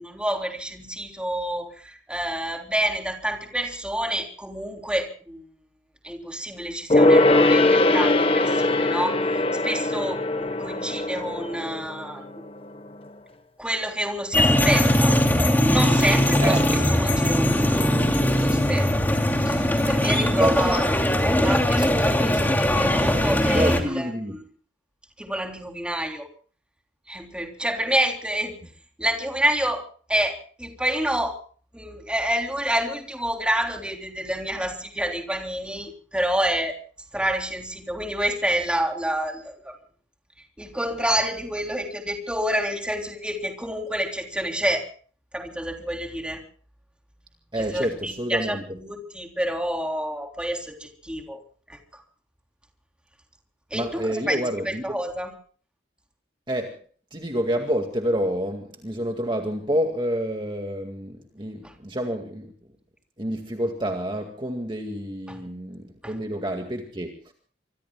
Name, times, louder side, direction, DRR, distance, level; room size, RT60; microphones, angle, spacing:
voice 1, 0.0-5.5 6.0-9.2 9.6-12.3 13.6-15.2 15.7-19.1 19.4-24.4 25.2-26.3 27.1-28.6 29.0-31.4 31.7-36.8 37.1-39.7 40.6-44.9 45.3-46.4 47.6-51.4 51.7-52.0 53.7-54.4 54.6-55.3 61.6-61.7 65.3-65.4 66.0-66.1, right 1 dB, 5° right, 2 dB, 3.4 m, -28 dB
Gong, 6.9-12.8 13.1-13.2, left 2 dB, 30° left, 1.2 m, -21 dB
sound 1, 14.3-23.8, left 1 dB, 10° left, 2.8 m, -20 dB
voice 2, 20.2-20.8 23.5-24.4 47.5-48.6 53.7-55.0 56.5-56.8 57.1-62.5 63.2-67.3, equal, 25° right, 3 dB, 2.1 m, -28 dB
26.0 x 23.5 x 2.3 m, 0.43 s
head